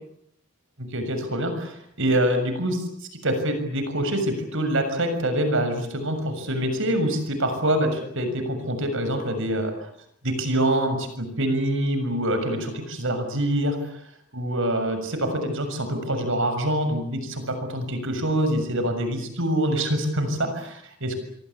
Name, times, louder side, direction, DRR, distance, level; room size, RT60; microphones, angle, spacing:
voice 1, 0.8-2.9 3.2-9.9 10.2-14.0 14.3-21.2, right 1 dB, 60° right, 8 dB, 6.8 m, -25 dB
27.5 x 23.0 x 8.5 m, 0.70 s
head